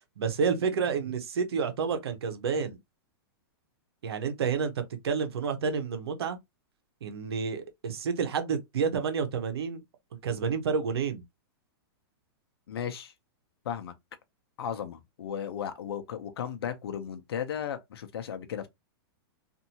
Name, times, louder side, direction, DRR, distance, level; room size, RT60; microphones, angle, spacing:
voice 1, 0.2-2.8 4.0-4.7 5.0-6.4 7.0-9.8 10.2-11.2, right 6 dB, 85° right, 0.9 m, -29 dB
voice 2, 12.7-13.1 13.6-13.9 14.6-18.7, left 8 dB, 80° left, 0.7 m, -35 dB
2.7 x 2.6 x 2.8 m
hypercardioid pair, 150°, 13 cm